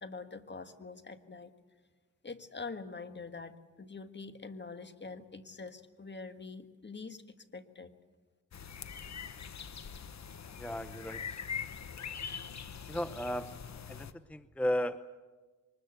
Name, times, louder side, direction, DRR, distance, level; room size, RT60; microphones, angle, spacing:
voice 1, 0.0-1.5 2.2-7.9, left 4 dB, 35° left, 9 dB, 1.6 m, -45 dB
sound 1, 8.5-14.1, left 7 dB, 60° left, 1.1 m, -43 dB
voice 2, 10.5-11.4 12.9-13.5 13.9-15.2, equal, 5° left, 12 dB, 0.7 m, -35 dB
23.5 x 20.5 x 8.1 m, 1.3 s
cardioid pair, 70°, 31 cm